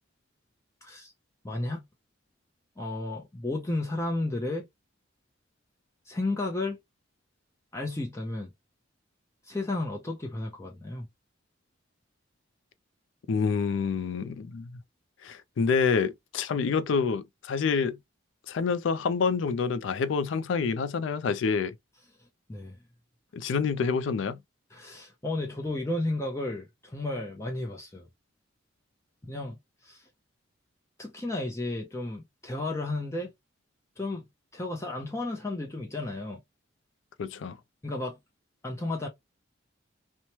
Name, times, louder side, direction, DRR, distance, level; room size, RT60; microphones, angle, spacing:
voice 1, 0.8-1.1 1.4-1.8 2.8-4.7 6.1-6.8 7.7-8.5 9.4-11.1 22.5-22.8 24.7-28.1 29.2-29.6 29.8-30.0 31.0-33.3 34.0-34.3 34.5-36.4 37.8-38.2 38.6-39.1, left 2 dB, 15° left, 0.6 m, -33 dB
voice 2, 13.3-14.7 15.2-18.0 18.5-21.7 23.3-24.4 37.2-37.6, left 5 dB, 70° left, 0.4 m, -27 dB
3.0 x 2.1 x 2.8 m
head